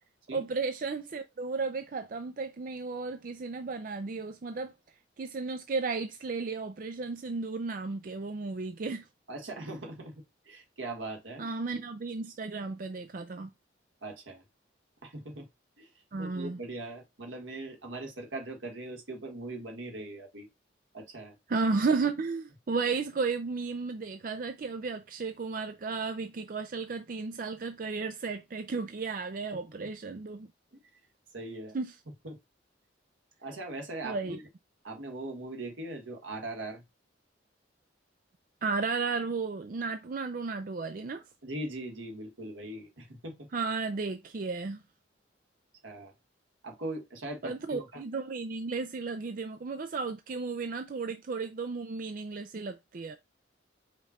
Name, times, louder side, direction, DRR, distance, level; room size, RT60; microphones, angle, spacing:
voice 1, 0.3-4.7 5.2-9.1 11.4-13.5 16.1-16.6 21.5-30.5 31.7-31.9 34.0-34.4 38.6-41.2 43.5-44.8 47.4-53.2, right 4 dB, 45° right, 0.4 m, -34 dB
voice 2, 9.3-11.5 14.0-14.4 15.0-15.5 15.8-15.9 16.2-20.5 20.9-21.3 29.8-29.9 31.3-31.8 32.2-32.4 33.4-34.4 34.8-36.8 41.4-43.5 45.8-46.1 46.6-48.0, right 2 dB, 85° right, 1.5 m, -40 dB
5.1 x 2.3 x 4.2 m
head